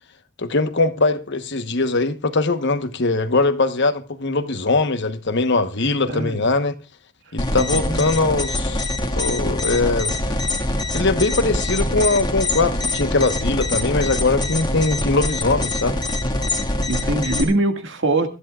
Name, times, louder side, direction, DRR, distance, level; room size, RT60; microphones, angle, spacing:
voice 1, 0.4-6.7 7.3-8.9 9.2-10.4 10.9-16.0, left 3 dB, 55° left, 1.2 m, -21 dB
voice 2, 6.1-6.4 7.5-8.0 16.9-18.3, right 2 dB, 60° right, 2.0 m, -22 dB
sound 1, 7.4-17.4, left 1 dB, 20° left, 1.9 m, -24 dB
24.0 x 13.5 x 2.4 m
head